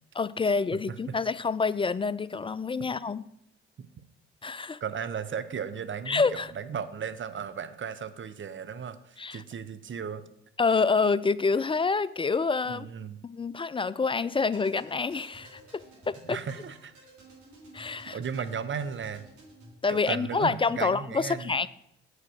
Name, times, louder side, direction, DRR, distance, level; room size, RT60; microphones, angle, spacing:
voice 1, 0.1-3.2 4.4-4.8 6.1-6.5 9.2-9.4 10.6-12.9 13.2-15.6 16.1-16.4 17.7-18.2 19.8-21.7, left 4 dB, 20° left, 17 dB, 0.3 m, -27 dB
voice 2, 4.8-10.2 12.7-13.2 16.2-16.9 18.1-19.3 19.9-21.6, right 7 dB, 40° right, 12 dB, 0.7 m, -35 dB
sound 1, 14.4-19.7, right 2 dB, 65° right, 3.4 m, -53 dB
8.0 x 4.9 x 6.3 m, 0.76 s
hypercardioid pair, 45°, 31 cm